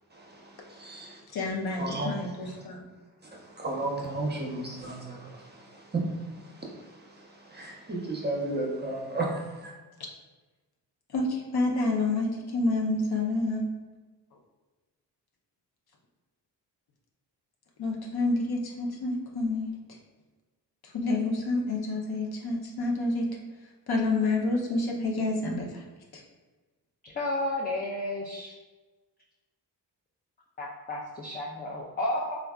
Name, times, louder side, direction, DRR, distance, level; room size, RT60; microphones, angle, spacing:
voice 1, 0.1-1.2 1.7-2.3 2.6-2.7 3.2-9.7, right 2 dB, 25° right, -1 dB, 0.7 m, -34 dB
voice 2, 1.3-2.8 11.1-13.6 17.8-19.7 20.8-23.3 23.9-25.8 26.1-26.2, left 2 dB, 60° left, -1 dB, 0.7 m, -28 dB
voice 3, 27.0-28.5 30.6-32.4, left 1 dB, 25° left, -3 dB, 0.4 m, -32 dB
3.3 x 2.4 x 2.3 m, 1.3 s
supercardioid pair, 55°, 42 cm